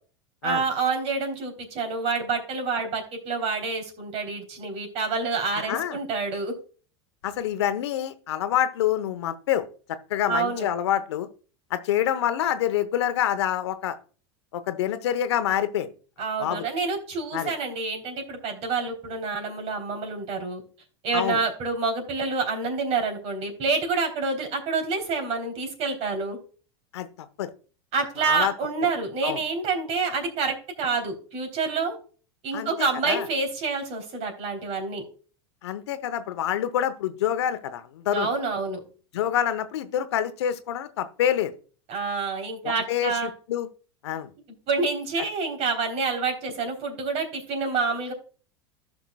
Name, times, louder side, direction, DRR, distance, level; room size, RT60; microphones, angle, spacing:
voice 1, 0.4-6.5 10.3-10.7 16.2-20.6 21.0-26.4 27.9-32.0 32.4-35.0 38.1-38.8 41.9-43.3 44.7-48.1, right 4 dB, 50° right, 5 dB, 3.4 m, -28 dB
voice 2, 5.5-6.0 7.2-9.7 10.1-11.3 11.7-14.0 14.5-15.9 16.4-16.6 17.3-17.5 21.1-21.4 26.9-27.1 27.4-27.5 28.2-28.5 29.2-29.4 32.5-33.3 35.6-38.3 39.1-41.5 42.6-43.7 44.0-44.3, left 10 dB, 80° left, 11 dB, 0.9 m, -26 dB
15.0 x 5.9 x 2.3 m, 0.39 s
hypercardioid pair, 100°, 14 cm